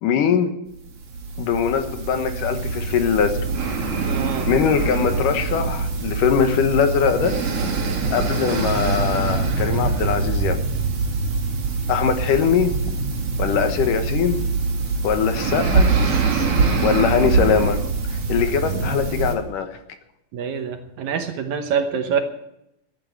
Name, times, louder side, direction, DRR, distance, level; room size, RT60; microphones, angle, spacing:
voice 1, 0.0-0.5 1.4-3.4 4.5-7.4 8.1-10.6 11.9-12.7 13.4-14.4 15.0-15.9 16.8-17.8 18.1-19.7, left 7 dB, 70° left, 7 dB, 2.7 m, -21 dB
Slow Breathing Woman, 0.9-19.3, right 4 dB, 45° right, 2.9 m, -23 dB
voice 2, 4.0-4.5 20.3-22.2, right 7 dB, 65° right, 6 dB, 2.1 m, -25 dB
13.5 x 10.0 x 8.1 m, 0.83 s
omnidirectional pair, 4.0 m